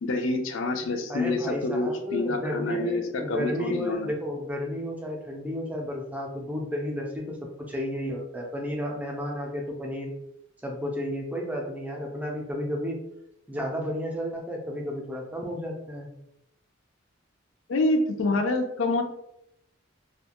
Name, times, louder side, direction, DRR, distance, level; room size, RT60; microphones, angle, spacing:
voice 1, 0.0-4.1 7.3-7.4 17.7-19.0, left 2 dB, 70° left, 5 dB, 0.4 m, -27 dB
voice 2, 1.1-7.4 7.7-10.1 10.6-13.0 13.5-16.1, equal, 10° right, 0 dB, 0.4 m, -32 dB
2.4 x 2.2 x 2.8 m, 0.79 s
head